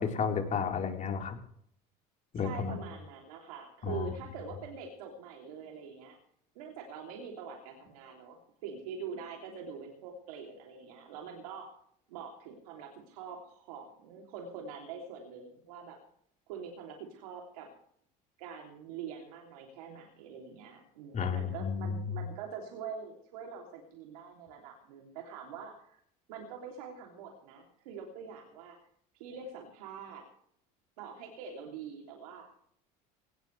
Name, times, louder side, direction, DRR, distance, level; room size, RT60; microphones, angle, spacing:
voice 1, 0.0-1.4 2.3-2.8 3.8-4.1 21.1-22.0, left 6 dB, 40° left, 2 dB, 4.3 m, -32 dB
voice 2, 2.3-6.2 6.5-11.6 12.1-16.0 16.5-17.7 18.4-26.0 26.3-28.8 29.1-30.2 31.0-32.5, right 6 dB, 90° right, 0 dB, 3.2 m, -44 dB
18.5 x 17.5 x 3.4 m, 0.66 s
supercardioid pair, 95°, 19 cm